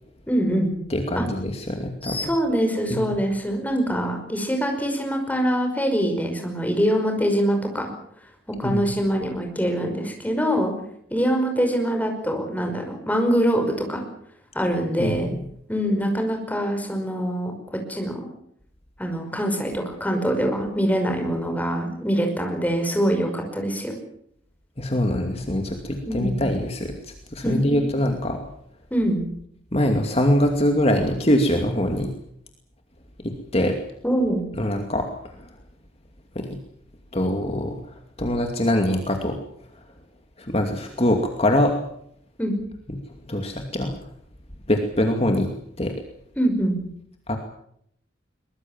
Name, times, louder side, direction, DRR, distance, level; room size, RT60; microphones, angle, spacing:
voice 1, 0.3-0.7 1.2-1.3 2.0-7.9 8.6-10.7 11.1-14.0 14.5-15.3 15.7-18.3 19.0-24.0 26.1-26.3 27.4-27.8 28.9-29.2 34.0-34.4 42.4-42.5 46.4-46.8, equal, 10° left, 4 dB, 5.5 m, -24 dB
voice 2, 0.9-2.2 2.9-3.2 8.6-8.9 15.0-15.3 24.8-28.4 29.7-32.1 33.2-33.8 34.6-35.1 35.4-35.5 36.3-36.6 37.1-39.4 40.4-41.7 43.3-43.9 44.7-45.5 45.8-45.9 47.3-47.4, left 1 dB, 30° left, 4 dB, 2.5 m, -23 dB
23.0 x 21.5 x 7.4 m, 0.70 s
head